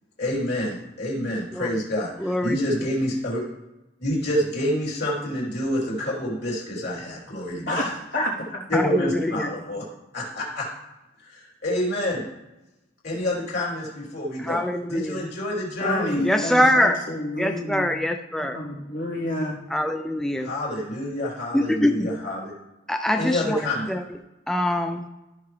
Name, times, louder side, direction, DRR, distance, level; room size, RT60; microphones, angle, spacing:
voice 1, 0.2-3.4 4.0-7.9 8.7-9.8 10.1-10.7 11.2-12.2 13.0-14.6 14.9-16.2 20.4-22.5 23.2-23.9, left 1 dB, 55° left, -5 dB, 3.5 m, -27 dB
voice 2, 2.2-2.6 8.7-9.5 14.4-15.2 16.2-17.0 17.4-18.6 19.7-20.5 21.5-22.1 22.9-23.6 23.9-24.0 24.5-25.1, left 1 dB, 5° left, 5 dB, 0.4 m, -23 dB
voice 3, 8.1-8.6 8.9-9.5 15.8-17.9 18.4-19.6, left 1 dB, 75° left, -5 dB, 3.2 m, -29 dB
14.5 x 5.7 x 3.3 m, 0.99 s
head